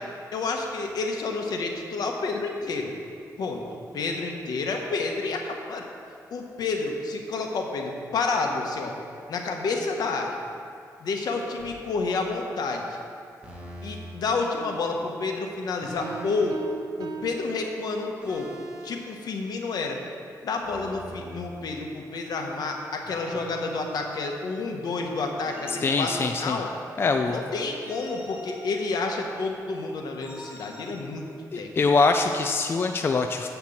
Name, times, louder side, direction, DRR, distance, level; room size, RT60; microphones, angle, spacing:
voice 1, 0.3-2.9 3.4-3.6 3.9-5.9 6.3-9.0 9.3-10.4 11.0-12.8 13.8-16.6 17.0-20.0 20.4-26.7 27.3-31.3 31.5-31.7, left 3 dB, 70° left, 2 dB, 1.2 m, -29 dB
sound 1, 11.6-11.8 13.4-14.1 15.8-16.7 18.2-18.9 20.6-22.1 23.0-24.6 25.4-27.1 27.8-29.3 30.2-31.0, right 1 dB, 15° right, 1.7 m, -43 dB
sound 2, 16.0-18.4, right 5 dB, 85° right, 0.7 m, -39 dB
voice 2, 25.7-26.6 27.0-27.4 31.5-33.5, left 4 dB, 35° left, 5 dB, 0.4 m, -23 dB
8.0 x 5.9 x 7.2 m, 2.4 s
wide cardioid pair, 125°, 7 cm